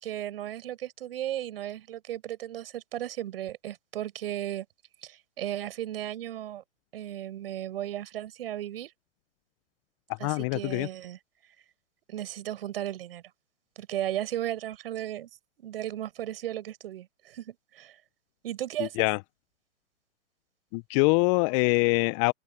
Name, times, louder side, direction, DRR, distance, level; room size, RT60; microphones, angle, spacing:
voice 1, 0.0-4.7 5.0-6.6 6.9-8.9 10.2-11.2 12.1-13.2 13.8-15.3 15.6-18.0 18.4-19.1, right 12 dB, 50° right, 7.7 m, -35 dB
voice 2, 10.2-10.9 18.8-19.2 20.7-22.3, left 32 dB, 25° left, 1.1 m, -24 dB
figure-of-eight pair, 125°, 38 cm